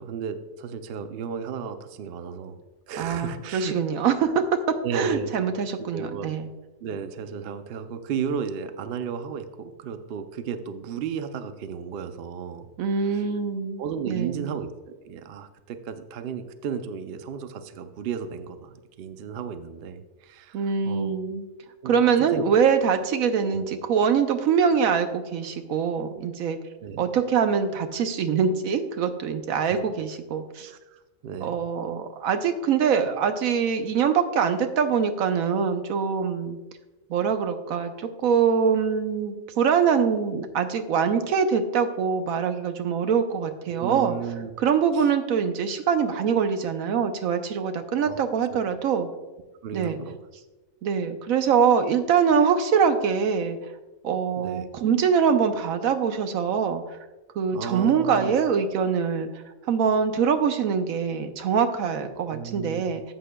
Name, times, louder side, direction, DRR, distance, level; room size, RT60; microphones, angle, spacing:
voice 1, 0.0-2.6 2.9-3.8 4.8-5.3 5.8-6.3 6.8-12.7 13.8-14.7 15.0-21.2 21.8-22.4 23.4-23.7 26.8-27.0 30.6-31.6 43.7-44.5 44.9-45.1 48.0-48.2 48.5-48.6 49.6-50.2 54.4-54.7 57.5-58.4 62.3-62.9, right 7 dB, 60° right, 9 dB, 0.6 m, -34 dB
voice 2, 3.0-6.5 12.8-14.6 20.5-21.5 21.8-26.6 27.0-30.7 31.4-36.6 37.1-44.1 44.6-49.1 49.7-50.0 50.8-53.6 54.0-56.8 57.4-59.4 59.7-63.0, right 6 dB, 80° right, 8 dB, 1.1 m, -24 dB
13.5 x 7.7 x 2.2 m, 1.1 s
omnidirectional pair, 1.5 m